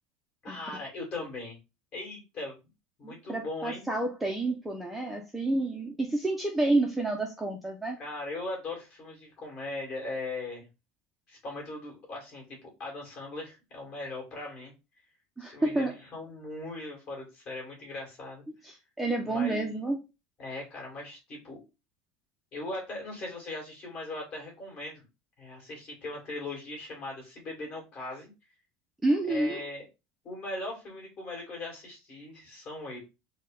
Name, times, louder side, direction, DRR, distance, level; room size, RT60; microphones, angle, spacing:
voice 1, 0.4-1.6 1.9-2.6 3.0-3.8 8.0-10.7 11.3-14.7 15.4-18.4 19.2-19.7 20.4-21.6 22.5-25.0 25.4-28.3 29.3-29.8 30.2-33.0, left 2 dB, 35° left, -1 dB, 2.1 m, -39 dB
voice 2, 3.0-8.0 15.4-16.0 18.6-20.0 29.0-29.6, right 2 dB, 5° right, 0 dB, 0.4 m, -29 dB
4.1 x 2.1 x 3.7 m, 0.27 s
cardioid pair, 170°, 3 cm